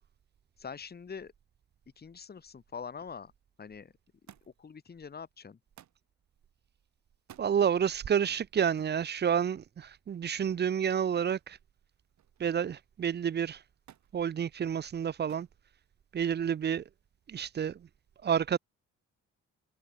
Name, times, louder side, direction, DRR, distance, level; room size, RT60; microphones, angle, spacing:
voice 1, 0.6-1.3 2.0-3.3 3.6-3.9 4.6-5.6, left 6 dB, 35° left, 1.8 m, -44 dB
Thump thud, 4.3-4.7 5.8-6.1 7.2-7.5 8.8-9.0 11.3-11.6 12.0-12.5 13.9-14.1 15.3-15.6 16.5-17.0 18.0-18.1, right 11 dB, 65° right, 2.8 m, -56 dB
voice 2, 7.4-11.6 12.4-13.6 14.1-15.5 16.1-16.8 17.3-17.9 18.2-18.6, right 8 dB, 35° right, 0.6 m, -29 dB
cardioid pair, 90°, 30 cm